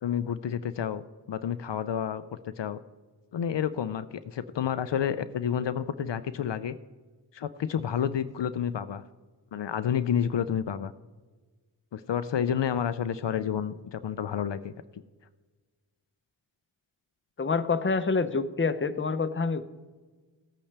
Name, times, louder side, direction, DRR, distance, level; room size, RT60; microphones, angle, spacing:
voice 1, 0.0-2.2 2.6-2.8 3.3-6.7 7.3-9.0 9.5-10.9 11.9-14.7, left 8 dB, 70° left, 12 dB, 0.5 m, -30 dB
voice 2, 17.4-19.6, left 4 dB, 25° left, 11 dB, 0.6 m, -27 dB
16.5 x 8.6 x 3.4 m, 1.4 s
wide cardioid pair, 45°, 46 cm